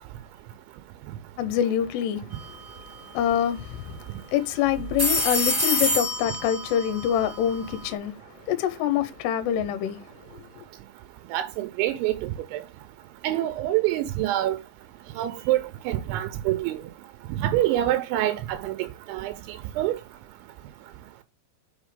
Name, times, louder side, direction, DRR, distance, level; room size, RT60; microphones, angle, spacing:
voice 1, 1.4-2.2 3.1-4.0 4.3-8.1 8.5-10.0 10.3-10.4, left 10 dB, 75° left, 2.8 m, -25 dB
sound 1, 2.3-2.6 2.9-3.0 4.7-7.9, left 1 dB, 25° right, 1.4 m, -27 dB
voice 2, 11.3-12.6 13.2-14.6 15.2-16.8 17.3-20.0, right 14 dB, 80° right, 2.9 m, -26 dB
6.1 x 5.6 x 5.0 m
omnidirectional pair, 5.4 m